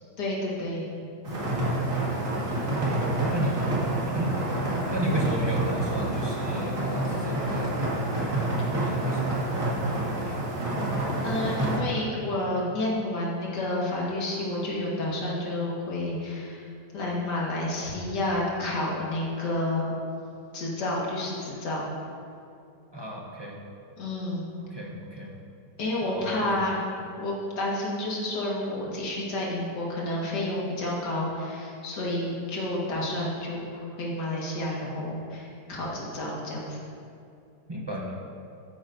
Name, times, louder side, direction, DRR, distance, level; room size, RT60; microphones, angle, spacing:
voice 1, 0.2-0.9 11.2-16.7 16.9-19.9 20.5-21.8 24.0-24.5 25.8-26.9 27.2-36.8, left 1 dB, 70° left, -5 dB, 2.3 m, -30 dB
sound 1, 1.2-11.8, right 1 dB, 50° right, 2.2 m, -28 dB
voice 2, 3.3-4.4 4.9-8.0 8.3-10.1 22.9-23.6 24.7-25.3 26.0-26.6 37.7-38.2, equal, 25° right, -2 dB, 0.6 m, -35 dB
13.0 x 8.9 x 2.7 m, 2.5 s
omnidirectional pair, 1.9 m